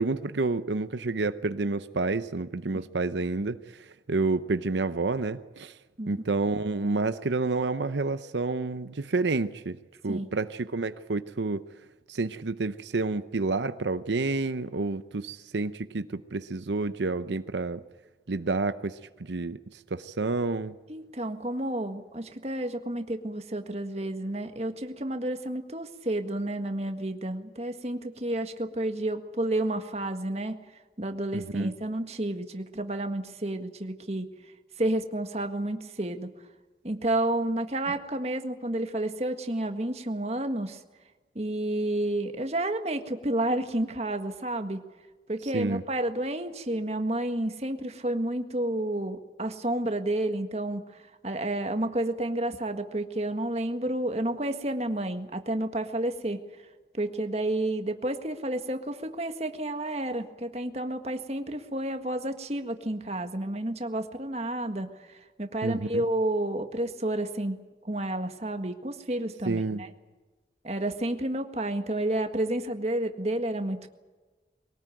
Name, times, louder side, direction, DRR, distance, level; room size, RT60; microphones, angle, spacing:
voice 1, 0.0-5.7 6.1-9.8 10.0-11.6 12.1-17.8 18.3-20.7 31.3-31.7 45.5-45.8 65.6-65.9 69.5-69.8, right 3 dB, 85° right, 12 dB, 0.8 m, -29 dB
voice 2, 20.9-30.6 31.0-34.3 34.8-36.3 36.8-40.8 41.4-44.8 45.3-56.4 56.9-67.6 67.8-69.9 70.6-73.9, right 1 dB, 35° right, 7 dB, 1.7 m, -30 dB
23.0 x 18.5 x 9.2 m, 1.3 s
head